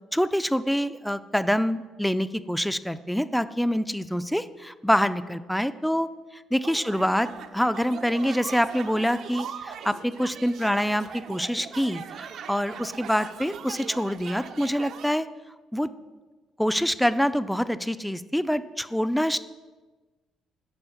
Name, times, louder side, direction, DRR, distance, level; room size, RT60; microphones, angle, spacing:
voice 1, 0.1-6.1 6.5-15.3 15.7-15.9 16.6-19.4, equal, ahead, 13 dB, 0.3 m, -26 dB
sound 1, 6.6-15.1, right 7 dB, 55° right, 0.5 m, -40 dB
11.0 x 4.3 x 7.0 m, 1.3 s
cardioid pair, 140°, 0 cm